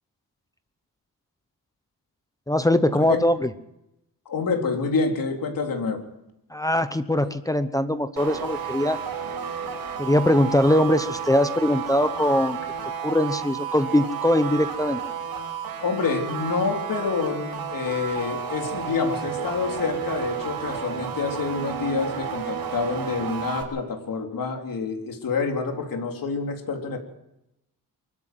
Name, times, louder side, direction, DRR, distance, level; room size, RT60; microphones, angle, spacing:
voice 1, 2.5-3.5 6.5-9.0 10.0-12.6 13.0-15.0, left 1 dB, 10° left, 10 dB, 0.9 m, -21 dB
voice 2, 4.3-6.0 15.8-27.0, left 4 dB, 65° left, 3 dB, 3.8 m, -27 dB
sound 1, 8.2-23.6, right 7 dB, 85° right, 5.6 m, -32 dB
24.0 x 14.0 x 7.8 m, 0.86 s
wide cardioid pair, 135°, 36 cm